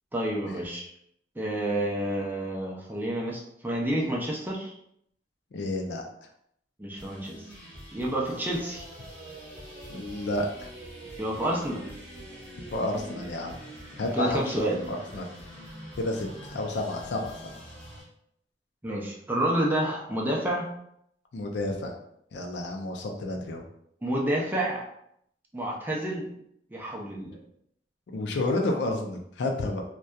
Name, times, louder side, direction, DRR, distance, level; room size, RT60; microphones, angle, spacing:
voice 1, 0.1-0.9 1.4-4.7 6.8-7.4 7.9-8.9 11.2-11.8 14.1-14.9 18.8-20.7 24.0-24.8 25.5-26.3 26.7-27.4, right 1 dB, 10° right, -2 dB, 0.4 m, -29 dB
voice 2, 5.5-6.0 9.9-10.7 12.7-13.6 14.0-15.3 16.0-17.5 21.3-21.9 22.3-23.6 28.1-29.8, left 2 dB, 70° left, 2 dB, 0.4 m, -30 dB
sound 1, 7.0-18.0, left 1 dB, 30° left, 0.8 m, -48 dB
sound 2, 8.2-18.0, right 1 dB, 55° right, 0.8 m, -46 dB
2.7 x 2.2 x 2.2 m, 0.73 s
head